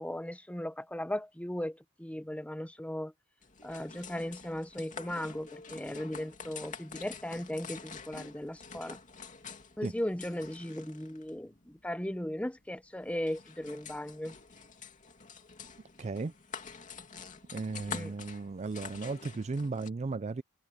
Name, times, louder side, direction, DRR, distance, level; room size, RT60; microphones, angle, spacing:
voice 1, 0.0-3.1 3.6-9.0 9.8-14.3 17.9-18.1, left 1 dB, 5° left, 0.8 m, -37 dB
sound 1, 3.4-19.9, left 5 dB, 35° left, 2.7 m, -47 dB
voice 2, 16.0-16.3 17.5-20.4, right 3 dB, 30° right, 0.4 m, -35 dB
head